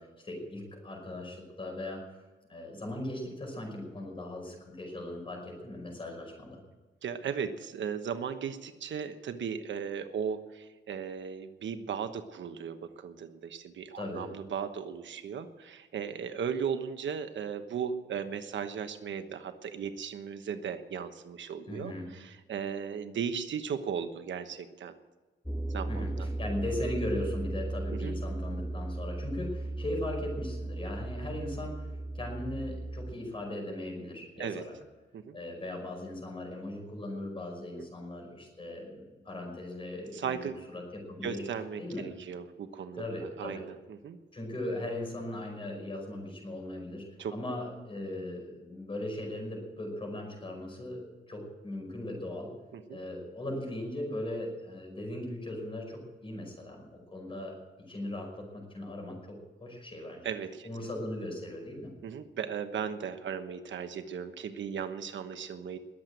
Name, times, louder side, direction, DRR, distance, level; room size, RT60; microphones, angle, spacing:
voice 1, 0.0-2.0 2.5-6.6 14.0-14.3 21.7-22.1 25.9-34.7 35.3-40.4 40.7-41.4 41.8-42.0 42.9-43.6 44.3-51.0 51.3-52.5 52.9-57.5 57.9-59.2 59.6-60.3 60.6-61.9, left 1 dB, 25° left, 1 dB, 5.2 m, -38 dB
voice 2, 7.0-24.9 25.7-26.3 27.9-28.1 34.4-34.6 35.1-35.4 37.8-37.9 40.1-40.6 41.2-43.0 43.4-44.2 47.2-47.6 52.7-53.0 60.2-60.7 62.0-65.8, right 7 dB, 75° right, 9 dB, 1.1 m, -36 dB
sound 1, 25.5-33.1, right 2 dB, ahead, 0.4 m, -36 dB
21.0 x 7.8 x 8.1 m, 1.3 s
wide cardioid pair, 180°, 19 cm